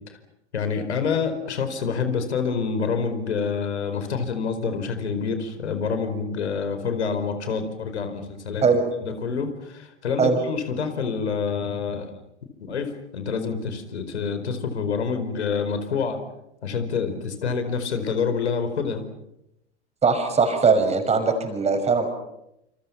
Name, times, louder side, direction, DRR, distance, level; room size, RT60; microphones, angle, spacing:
voice 1, 0.5-8.6 9.0-12.1 12.6-16.2 16.6-19.0, left 5 dB, 70° left, 8 dB, 4.7 m, -27 dB
voice 2, 20.0-22.1, right 5 dB, 20° right, 6 dB, 6.1 m, -20 dB
28.5 x 28.5 x 6.0 m, 0.84 s
figure-of-eight pair, 95°, 35 cm